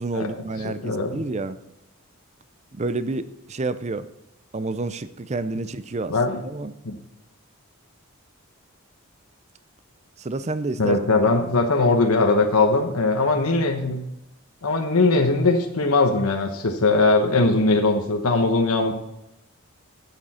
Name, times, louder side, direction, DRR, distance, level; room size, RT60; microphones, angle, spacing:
voice 1, 0.0-1.6 2.7-4.1 4.5-6.1 6.4-6.7 10.2-11.0, right 2 dB, 30° right, 0.5 m, -29 dB
voice 2, 0.6-1.2 6.1-6.4 6.8-7.0 10.8-14.0 14.6-18.9, left 3 dB, 85° left, 1.1 m, -20 dB
12.0 x 8.7 x 4.3 m
head